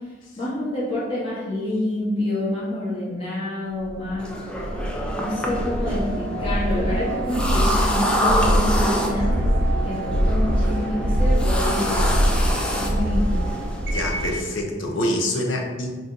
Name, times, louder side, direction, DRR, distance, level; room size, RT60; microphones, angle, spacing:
voice 1, 0.4-4.3 5.2-9.3 9.8-12.4 12.7-13.4, left 1 dB, 30° left, -9 dB, 1.4 m, -27 dB
sound 1, 3.8-14.5, equal, 80° right, 0.6 m, -23 dB
sound 2, 4.2-14.4, equal, 5° left, 0.4 m, -28 dB
voice 2, 13.9-15.9, left 1 dB, 90° left, 1 dB, 0.6 m, -25 dB
3.9 x 2.3 x 3.8 m, 1.3 s
head